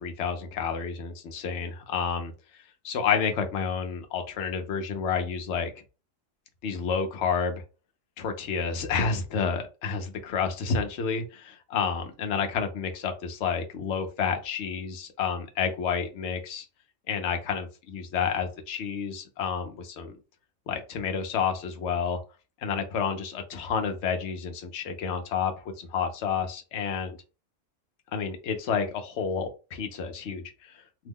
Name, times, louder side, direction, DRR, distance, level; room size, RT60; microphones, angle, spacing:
voice 1, 0.0-2.3 2.8-5.7 6.6-7.6 8.2-16.7 17.1-20.1 20.7-22.2 22.6-27.2 28.1-30.7, left 6 dB, 65° left, 5 dB, 0.9 m, -30 dB
2.8 x 2.1 x 3.5 m, 0.32 s
omnidirectional pair, 1.4 m